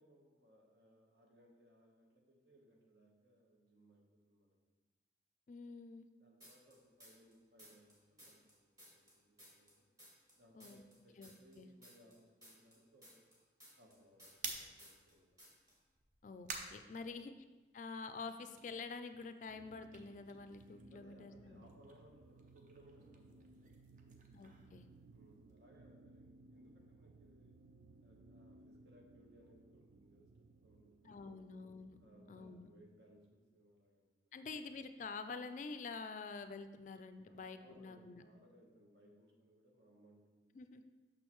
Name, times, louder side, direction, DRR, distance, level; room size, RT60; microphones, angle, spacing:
voice 1, 0.0-4.7 6.2-9.9 10.4-13.3 13.8-15.3 17.0-17.3 20.9-23.6 23.9-24.3 25.1-27.5 28.0-31.4 32.0-34.4 37.3-40.6, equal, 70° right, 0 dB, 1.1 m, -66 dB
voice 2, 5.5-6.1 10.5-10.8 11.2-11.7 16.2-17.3 17.7-21.6 24.3-24.9 31.0-32.0 32.3-32.7 34.3-38.2 40.6-40.8, left 4 dB, 45° left, 9 dB, 0.3 m, -48 dB
sound 1, 6.4-7.3 7.6-10.4 10.6-14.5 14.8-15.1 15.4-15.7, equal, 20° right, 1.8 m, -60 dB
sound 2, 14.4-17.8 18.1-21.1 21.4-25.5, right 4 dB, 45° right, 0.6 m, -52 dB
sound 3, 19.5-33.6, right 2 dB, 85° right, 0.3 m, -62 dB
6.3 x 6.1 x 3.0 m, 1.2 s
head